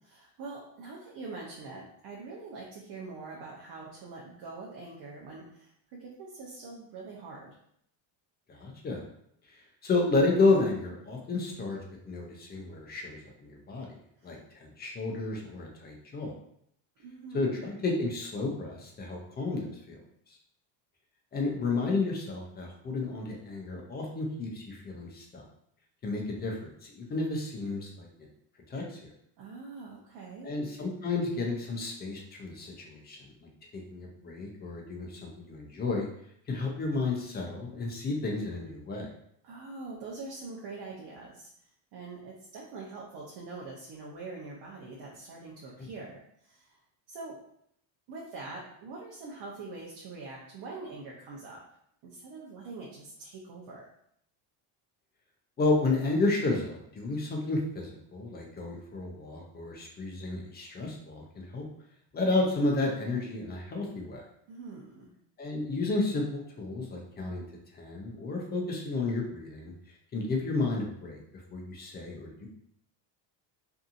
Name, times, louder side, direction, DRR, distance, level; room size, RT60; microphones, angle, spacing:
voice 1, 0.0-7.6 14.2-14.4 17.0-17.7 29.4-30.5 39.4-41.5 41.9-46.8 47.1-47.4 48.1-51.6 52.0-53.9 60.6-60.8 64.5-65.1, right 3 dB, 55° right, -3 dB, 0.7 m, -44 dB
voice 2, 8.5-9.0 9.8-11.8 12.1-13.9 14.2-14.4 14.8-16.3 17.3-20.0 21.3-25.4 26.0-28.1 28.7-29.1 30.4-33.5 33.9-36.1 36.5-39.1 45.8-45.9 55.6-61.7 62.1-64.2 65.4-67.4 67.7-69.7 70.1-71.2 71.5-72.5, left 3 dB, 25° left, 0 dB, 0.4 m, -31 dB
2.7 x 2.5 x 2.4 m, 0.70 s
cardioid pair, 140°, 46 cm